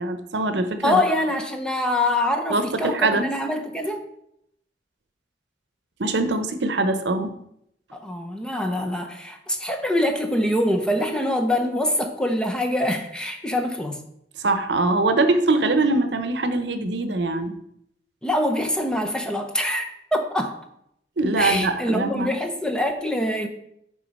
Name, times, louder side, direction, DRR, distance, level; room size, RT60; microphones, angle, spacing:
voice 1, 0.0-1.0 2.5-3.3 6.0-7.3 14.4-17.6 21.2-22.3, right 2 dB, 80° right, 9 dB, 0.8 m, -22 dB
voice 2, 0.8-4.1 7.9-14.1 18.2-20.6 21.4-23.5, left 1 dB, 5° left, 4 dB, 0.8 m, -24 dB
9.0 x 3.8 x 5.3 m, 0.75 s
head